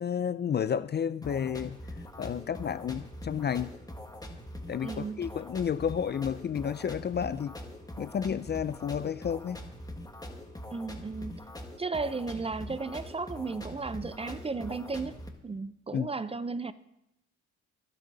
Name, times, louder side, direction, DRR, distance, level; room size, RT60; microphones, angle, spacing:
voice 1, 0.0-1.8 2.2-3.7 4.7-7.6 8.0-9.6 15.9-16.1, left 8 dB, 35° left, 0.4 m, -31 dB
sound 1, 1.2-15.3, left 1 dB, 10° left, 1.6 m, -43 dB
voice 2, 4.8-5.3 10.7-11.5 11.8-16.7, right 4 dB, 20° right, 0.5 m, -35 dB
22.0 x 8.4 x 4.0 m
cardioid pair, 90°, 30 cm